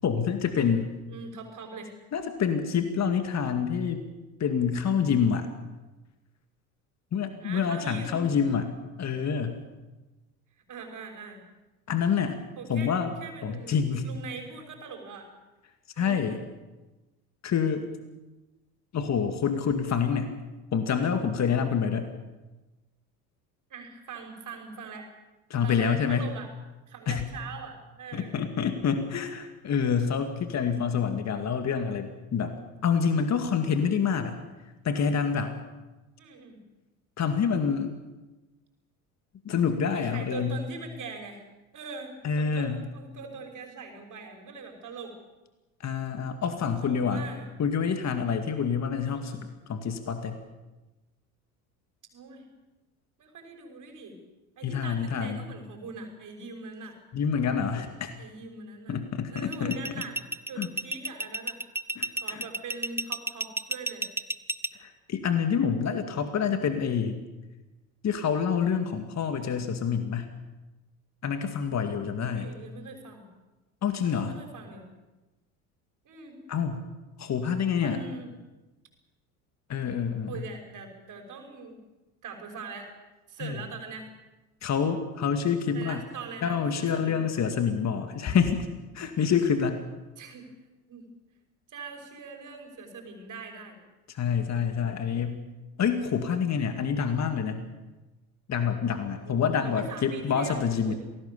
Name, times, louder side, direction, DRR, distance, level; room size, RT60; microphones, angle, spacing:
voice 1, 0.0-0.9 2.1-4.0 4.4-5.5 7.1-9.6 11.9-12.4 12.7-13.1 13.4-14.1 16.0-16.4 17.4-17.8 18.9-20.4 20.7-22.1 25.5-26.3 27.1-27.3 28.1-34.4 34.8-35.6 37.2-37.9 39.4-40.6 42.2-42.8 45.8-47.3 47.6-50.4 54.6-55.5 57.1-58.1 58.9-60.0 60.6-60.7 62.0-62.4 64.7-67.2 68.0-70.3 71.2-72.5 73.8-74.4 76.5-76.8 77.2-78.0 79.7-80.4 83.4-83.6 84.6-86.0 86.4-88.7 88.9-89.8 94.1-95.4 95.8-97.7 98.5-100.9, left 6 dB, 35° left, 7 dB, 2.4 m, -27 dB
voice 2, 1.1-1.9 7.4-8.3 10.7-11.4 12.6-12.9 13.2-13.8 14.0-15.3 16.0-16.3 23.7-25.1 25.6-26.5 26.9-28.4 36.2-36.6 39.9-41.4 41.7-45.2 46.8-47.5 49.1-49.4 52.1-52.5 53.2-54.2 54.6-57.0 58.2-59.0 59.3-60.2 60.5-61.6 62.1-64.1 72.3-73.3 74.0-74.9 76.0-76.4 77.8-78.3 80.3-81.8 82.2-82.9 83.3-84.1 85.7-87.3 90.2-90.5 90.9-91.1 91.7-93.8 99.2-101.0, right 4 dB, 45° right, 3 dB, 5.8 m, -42 dB
sound 1, 59.4-64.7, right 2 dB, 5° right, 0.8 m, -31 dB
27.0 x 19.0 x 7.1 m, 1.1 s
hypercardioid pair, 70°, 44 cm